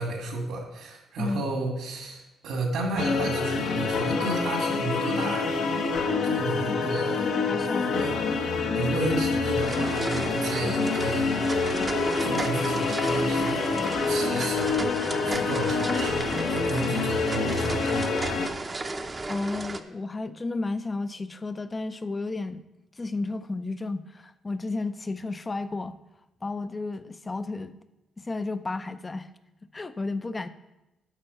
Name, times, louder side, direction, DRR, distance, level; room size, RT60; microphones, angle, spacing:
voice 1, 0.0-5.5 6.2-7.3 7.8-8.2 8.7-11.3 12.2-13.8 14.1-14.9 15.2-18.1, right 2 dB, 80° right, 2 dB, 2.2 m, -32 dB
sound 1, 3.0-18.5, left 4 dB, 75° left, 1.0 m, -27 dB
voice 2, 7.5-8.1 10.6-10.7 19.3-22.6 23.0-26.0 26.4-27.8 28.2-29.3 29.7-30.5, left 3 dB, 25° left, 11 dB, 0.4 m, -32 dB
sound 2, 9.6-19.8, right 2 dB, 25° right, 0.6 m, -34 dB
12.0 x 4.5 x 5.5 m, 0.96 s
cardioid pair, 90°, 0 cm